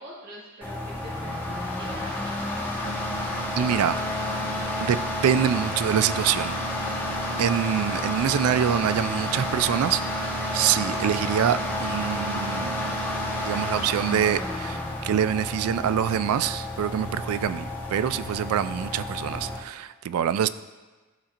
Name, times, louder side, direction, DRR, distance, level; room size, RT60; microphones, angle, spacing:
voice 1, 0.0-2.3, equal, 45° right, -7 dB, 1.8 m, -44 dB
sound 1, 0.6-19.6, left 1 dB, 10° left, 1.2 m, -30 dB
voice 2, 3.6-4.0 4.8-6.6 7.4-12.9 13.4-20.5, right 9 dB, 85° right, 16 dB, 0.3 m, -25 dB
12.5 x 4.2 x 2.5 m, 1.3 s
head